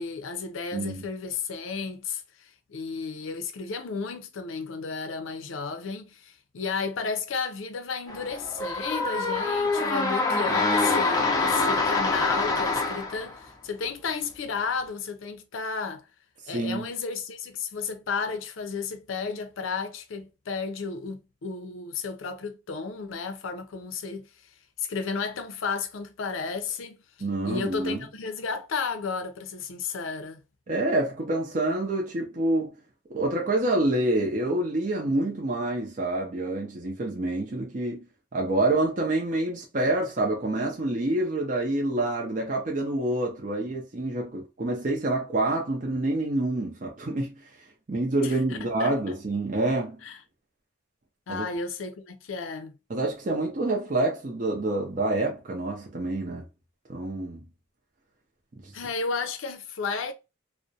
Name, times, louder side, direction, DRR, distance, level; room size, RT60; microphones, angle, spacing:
voice 1, 0.0-16.1 16.5-24.3 24.8-27.0 27.4-30.4 48.2-49.1 50.0-50.2 51.3-52.8 58.7-60.1, left 5 dB, 75° left, 0.5 m, -33 dB
voice 2, 0.7-1.0 16.5-16.9 27.2-28.0 30.7-32.7 33.1-47.3 47.9-50.0 51.3-51.4 52.9-56.4 56.9-57.5 58.6-58.7, right 2 dB, 40° right, 0.5 m, -27 dB
sound 1, 8.1-13.4, left 3 dB, 20° left, 0.4 m, -25 dB
2.3 x 2.0 x 2.6 m
head